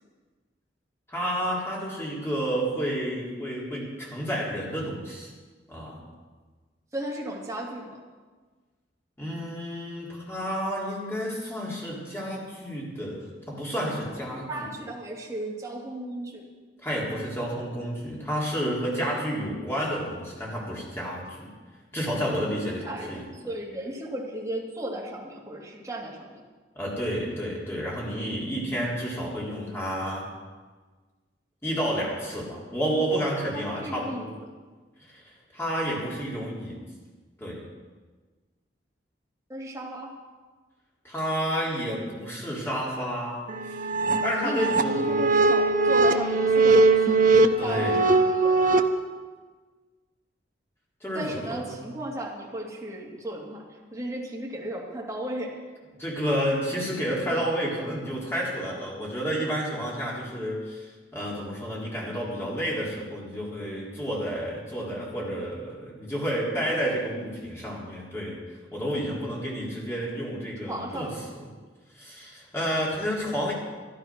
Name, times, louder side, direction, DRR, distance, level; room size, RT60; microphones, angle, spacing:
voice 1, 1.1-5.3 5.7-6.0 9.2-14.7 16.8-21.5 21.9-23.2 26.8-30.2 31.6-34.3 35.1-35.2 35.5-36.8 37.4-37.6 41.0-43.5 44.2-45.2 47.6-48.1 51.0-51.8 56.0-68.4 68.7-71.1 71.9-73.5, equal, 15° left, -4 dB, 3.6 m, -30 dB
voice 2, 6.9-8.0 14.3-16.4 22.8-26.4 33.4-34.5 39.5-40.1 44.4-47.1 47.6-48.7 51.1-53.6 53.9-55.5 70.7-71.1, right 1 dB, 15° right, -3 dB, 2.7 m, -35 dB
sound 1, 43.5-48.8, right 3 dB, 45° right, 0.8 m, -21 dB
13.0 x 12.0 x 6.1 m, 1.4 s
head